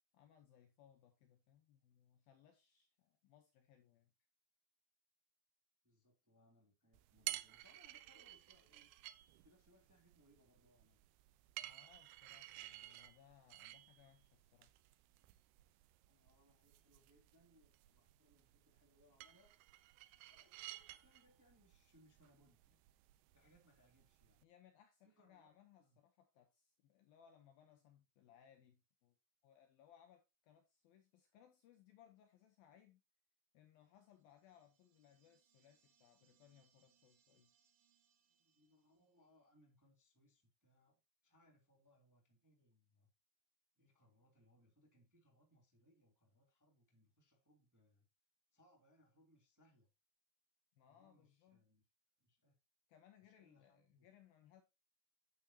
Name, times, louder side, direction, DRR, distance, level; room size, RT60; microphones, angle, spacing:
voice 1, 0.1-4.1 11.6-14.7 24.4-29.2 29.4-33.0 33.5-37.5 50.8-51.6 52.9-54.6, left 9 dB, 70° left, 2.4 m, -67 dB
voice 2, 5.8-8.9 9.4-11.0 16.0-19.6 20.3-22.8 23.3-24.4 25.0-25.5 25.8-26.0 38.3-43.1 43.8-48.1 48.5-49.9 50.9-51.8 52.2-52.6 53.2-54.1, equal, 5° right, 1.7 m, -72 dB
sound 1, 6.9-24.4, right 16 dB, 80° right, 2.4 m, -54 dB
sound 2, 34.0-39.4, right 8 dB, 55° right, 3.0 m, -79 dB
9.3 x 8.6 x 2.8 m
omnidirectional pair, 5.2 m